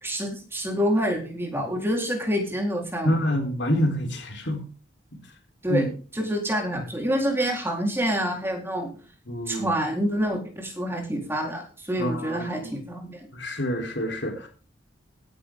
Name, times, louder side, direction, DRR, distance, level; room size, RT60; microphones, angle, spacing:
voice 1, 0.0-3.2 5.6-5.8 6.1-8.9 9.5-13.3, equal, 10° right, 1 dB, 4.3 m, -27 dB
voice 2, 3.0-4.7 5.7-5.9 9.3-9.7 12.0-12.7 13.3-14.5, equal, 65° left, 3 dB, 4.1 m, -27 dB
17.0 x 10.0 x 3.9 m, 0.38 s
head